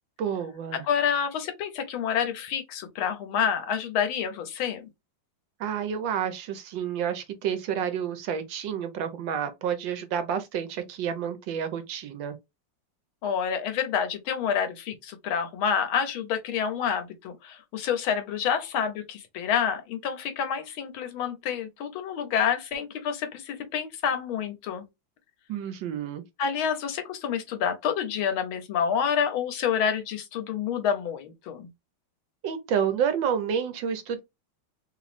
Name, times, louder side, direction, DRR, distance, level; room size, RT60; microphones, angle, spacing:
voice 1, 0.2-0.8 5.6-12.4 25.5-26.2 32.4-34.2, right 8 dB, 70° right, 1.3 m, -29 dB
voice 2, 0.7-4.9 13.2-24.8 26.4-31.7, left 7 dB, 80° left, 1.7 m, -28 dB
3.7 x 3.0 x 2.5 m
omnidirectional pair, 2.2 m